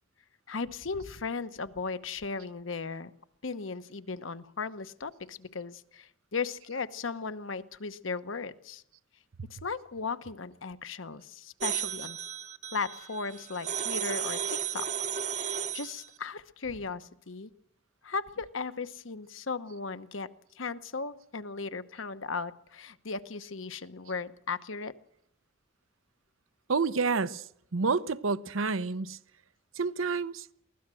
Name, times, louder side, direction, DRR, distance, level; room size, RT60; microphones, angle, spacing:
voice 1, 0.5-3.1 3.4-8.8 9.5-12.2 12.7-14.9 15.3-17.5 18.0-20.3 20.6-24.9, left 4 dB, 70° left, 1.0 m, -37 dB
sound 1, 11.6-16.1, right 8 dB, 35° right, 0.8 m, -34 dB
voice 2, 26.7-27.5 27.7-29.2 29.7-30.5, right 4 dB, 85° right, 0.8 m, -29 dB
23.0 x 16.5 x 7.7 m
head